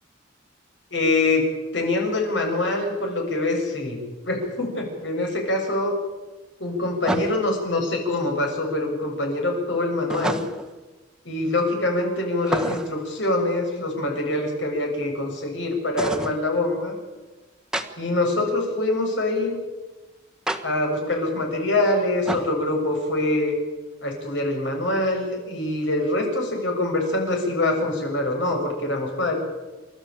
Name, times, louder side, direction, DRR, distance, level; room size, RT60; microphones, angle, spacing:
voice 1, 0.9-1.4 1.7-4.0 4.2-5.9 6.6-10.5 11.3-16.9 18.0-19.6 20.6-23.5 24.0-29.4, left 2 dB, 75° left, 1 dB, 7.0 m, -24 dB
sound 1, 4.4-4.5 7.0-7.6 10.1-10.8 12.4-13.1 16.0-16.4 17.7-17.9 20.5-20.6 22.2-22.6, right 1 dB, 5° right, 1.3 m, -28 dB
29.0 x 13.5 x 9.0 m, 1.2 s
head